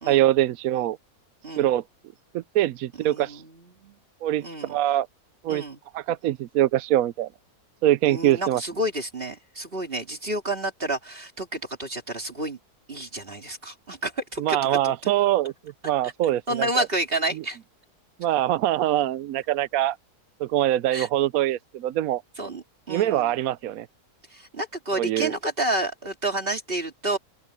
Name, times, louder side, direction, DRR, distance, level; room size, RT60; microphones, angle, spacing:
voice 1, 0.1-1.0 1.6-1.8 2.3-3.4 4.2-4.4 4.7-5.1 5.4-5.6 5.9-7.3 7.8-8.6 14.4-15.5 15.8-16.9 18.2-20.0 20.4-22.2 22.9-23.9 24.9-25.3, right 13 dB, 70° right, 1.0 m, -23 dB
voice 2, 3.0-4.0 4.4-4.8 5.5-5.8 8.0-12.6 12.9-14.6 15.0-15.1 16.0-16.1 16.5-17.6 20.9-21.1 22.4-23.3 24.3-27.2, right 1 dB, 35° right, 2.7 m, -30 dB
open air
omnidirectional pair, 1.6 m